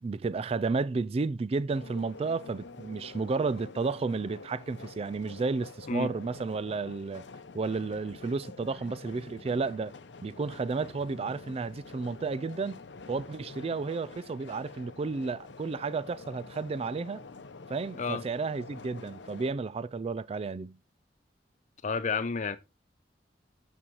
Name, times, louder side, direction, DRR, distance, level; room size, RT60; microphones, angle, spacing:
voice 1, 0.0-7.2 7.5-9.9 10.2-12.8 13.1-17.2 17.7-20.8, right 4 dB, 35° right, 0.3 m, -32 dB
sound 1, 1.7-19.5, left 3 dB, 85° left, 0.7 m, -47 dB
voice 2, 21.8-22.6, left 5 dB, 45° left, 0.6 m, -30 dB
8.6 x 7.2 x 3.1 m
head